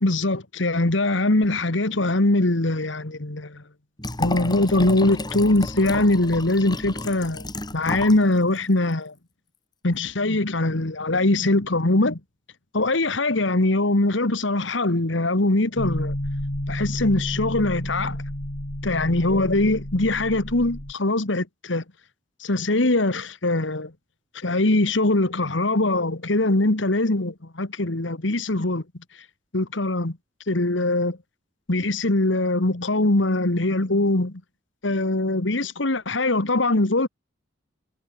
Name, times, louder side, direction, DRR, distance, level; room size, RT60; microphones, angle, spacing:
voice 1, 0.0-3.6 4.2-9.1 9.8-12.2 12.7-16.2 16.7-18.2 18.8-21.8 22.4-23.9 24.3-28.8 29.5-30.2 30.5-31.2 31.7-34.4 34.8-37.1, left 2 dB, 70° left, 1.8 m, -22 dB
Liquid, 4.0-8.2 8.6-8.7, left 1 dB, 20° left, 6.2 m, -31 dB
sound 1, 15.8-20.9, left 1 dB, 50° left, 3.1 m, -31 dB
head